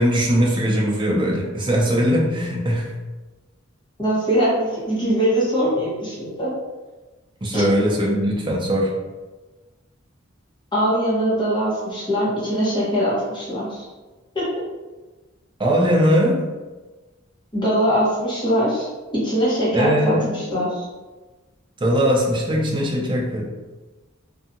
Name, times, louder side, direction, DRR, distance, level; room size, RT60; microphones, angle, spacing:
voice 1, 0.0-2.9 7.4-8.9 15.6-16.4 19.7-20.3 21.8-23.5, equal, 25° right, -3 dB, 0.5 m, -20 dB
voice 2, 4.0-6.5 7.5-7.7 10.7-13.9 14.3-14.5 17.5-18.9 19.1-20.8, equal, 25° left, -8 dB, 1.0 m, -22 dB
2.7 x 2.3 x 2.5 m, 1.2 s
head